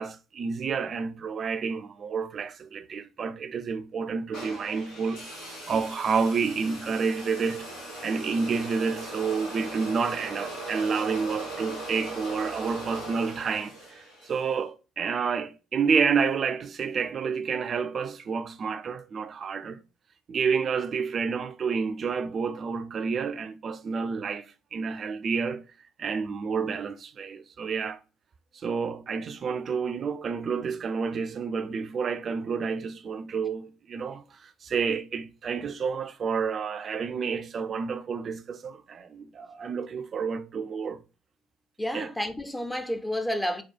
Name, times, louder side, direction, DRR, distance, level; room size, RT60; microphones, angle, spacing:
voice 1, 0.0-7.7 8.0-19.8 20.3-25.6 26.0-28.0 28.5-41.0 41.9-42.1, right 5 dB, 45° right, 0.4 m, -29 dB
sound 1, 4.3-14.5, right 1 dB, 70° left, 1.7 m, -39 dB
voice 2, 41.8-43.6, equal, 10° left, 0.6 m, -30 dB
4.2 x 2.3 x 4.1 m
figure-of-eight pair, 50°, 0 cm